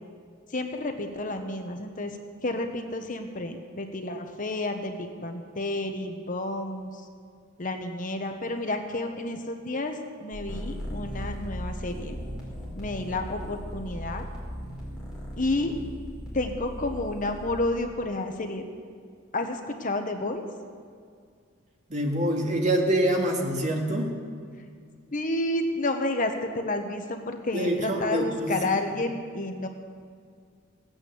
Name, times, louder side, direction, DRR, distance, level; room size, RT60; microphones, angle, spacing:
voice 1, 0.5-2.2 2.4-6.9 7.6-12.2 12.7-14.2 15.4-15.7 16.3-18.7 19.3-20.5 25.1-29.7, left 2 dB, 40° left, 5 dB, 1.0 m, -30 dB
sound 1, 10.3-17.7, equal, 5° right, 4.6 m, -37 dB
voice 2, 21.9-24.1 27.5-28.5, right 1 dB, 35° right, 0 dB, 2.0 m, -25 dB
16.5 x 8.8 x 7.8 m, 2.2 s
head